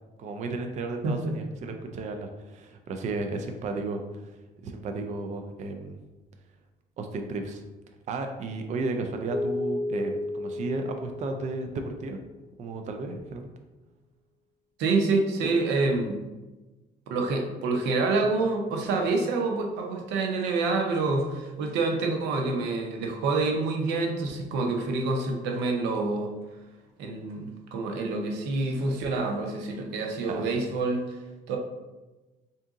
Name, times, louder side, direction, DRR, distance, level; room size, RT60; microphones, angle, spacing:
voice 1, 0.2-4.3 4.6-6.0 7.0-7.6 8.1-12.2 12.6-13.5 15.4-15.5 30.2-30.5, right 3 dB, 45° right, 5 dB, 0.4 m, -33 dB
Keyboard (musical), 9.3-12.3, left 2 dB, 45° left, 0.9 m, -33 dB
voice 2, 14.8-16.2 17.1-26.3 27.0-31.0 31.5-31.6, right 3 dB, 90° right, 2 dB, 0.7 m, -27 dB
3.6 x 2.7 x 3.6 m, 1.1 s
cardioid pair, 110°, 17 cm